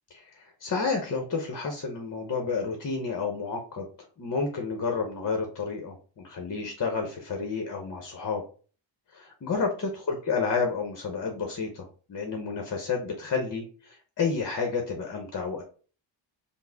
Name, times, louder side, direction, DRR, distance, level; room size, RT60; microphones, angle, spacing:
voice 1, 0.1-3.9 4.2-8.4 9.1-15.6, left 4 dB, 40° left, 3 dB, 0.8 m, -30 dB
5.8 x 2.1 x 3.3 m, 0.39 s
wide cardioid pair, 165°, 48 cm